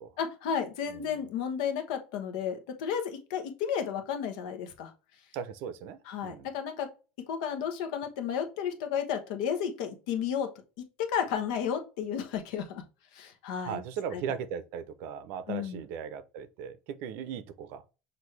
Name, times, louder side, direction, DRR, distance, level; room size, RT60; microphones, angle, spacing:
voice 1, 0.2-4.9 6.1-6.9 7.3-10.5 10.8-12.8 13.1-13.8 14.1-14.2 15.5-15.8, left 8 dB, 75° left, 1.0 m, -32 dB
voice 2, 0.9-1.2 5.3-6.5 13.6-17.8, right 8 dB, 55° right, 0.6 m, -38 dB
6.1 x 2.6 x 3.2 m
cardioid pair, 165°, 4 cm